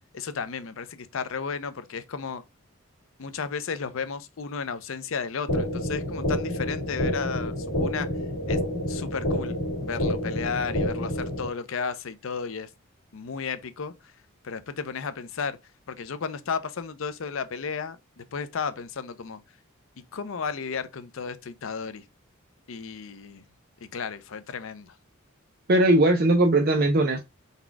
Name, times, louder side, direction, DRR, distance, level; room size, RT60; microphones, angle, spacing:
voice 1, 0.1-2.4 3.2-8.1 8.5-8.6 8.9-9.6 9.8-12.7 13.1-13.9 14.4-15.6 15.9-19.4 20.1-22.0 22.7-23.4 23.8-25.0, left 5 dB, 65° left, 0.5 m, -33 dB
sound 1, 5.5-11.5, left 1 dB, 85° left, 1.8 m, -28 dB
voice 2, 25.7-27.2, right 1 dB, 45° right, 0.5 m, -19 dB
4.1 x 2.3 x 4.5 m
head